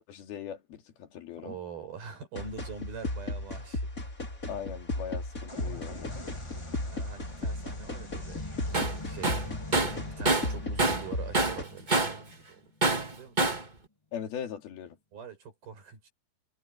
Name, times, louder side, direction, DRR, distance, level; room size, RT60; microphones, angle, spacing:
voice 1, 0.0-1.6 4.5-6.1 14.1-15.0, left 8 dB, 80° left, 4.6 m, -40 dB
voice 2, 1.4-3.9 6.9-8.5 8.7-12.7 13.1-13.4 15.1-16.1, right 5 dB, 75° right, 7.8 m, -44 dB
sound 1, 2.4-11.6, left 2 dB, 20° left, 4.6 m, -36 dB
sound 2, 5.5-13.0, left 2 dB, 35° left, 0.4 m, -44 dB
Tools, 8.7-9.0 9.2-11.1 11.3-12.2 12.8-13.7, right 2 dB, 25° right, 0.9 m, -26 dB
omnidirectional pair, 4.3 m